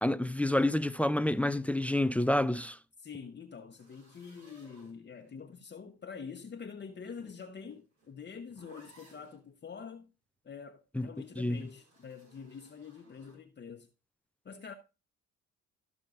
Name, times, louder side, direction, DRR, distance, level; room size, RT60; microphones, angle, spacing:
voice 1, 0.0-2.8 10.9-11.1 11.4-11.6, left 1 dB, 5° left, 0.4 m, -28 dB
voice 2, 3.0-10.1 10.4-13.9 14.4-14.7, left 6 dB, 35° left, 0.9 m, -46 dB
sound 1, 3.8-5.5 6.7-9.4 11.1-13.4, right 1 dB, 65° right, 4.5 m, -61 dB
13.5 x 6.1 x 2.5 m
cardioid pair, 90°, 30 cm